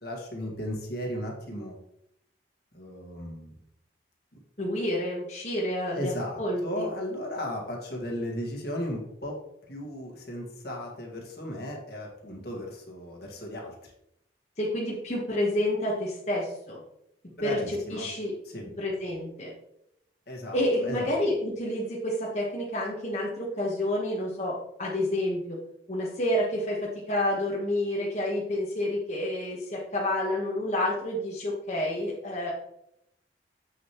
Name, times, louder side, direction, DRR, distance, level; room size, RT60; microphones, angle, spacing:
voice 1, 0.0-1.8 2.7-3.5 5.9-9.4 9.7-13.9 17.4-18.1 18.4-18.6 20.3-21.1, left 1 dB, 60° left, 0 dB, 1.8 m, -35 dB
voice 2, 4.6-6.1 6.4-6.9 14.6-16.8 17.4-18.3 18.8-19.5 20.5-25.6 25.9-32.5, left 1 dB, 40° left, -4 dB, 1.3 m, -29 dB
7.8 x 6.5 x 3.1 m, 0.79 s
head